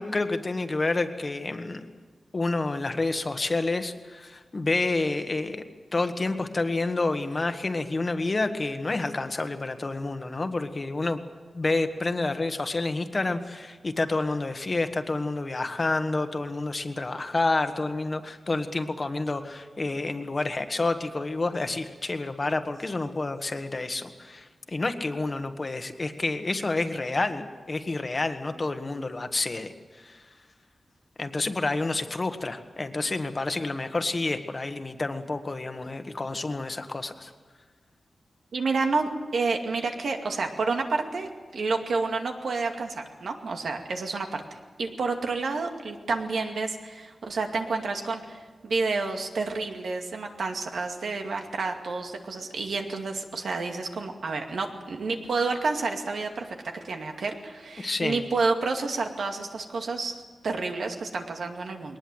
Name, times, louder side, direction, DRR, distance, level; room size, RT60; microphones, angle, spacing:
voice 1, 0.0-1.9 2.3-5.6 5.9-11.2 11.5-30.2 31.2-37.3 57.8-58.2, left 2 dB, 30° left, 8 dB, 1.4 m, -29 dB
voice 2, 38.5-62.0, right 3 dB, 80° right, 3 dB, 2.3 m, -30 dB
21.5 x 19.5 x 8.0 m, 1.4 s
wide cardioid pair, 155°, 0 cm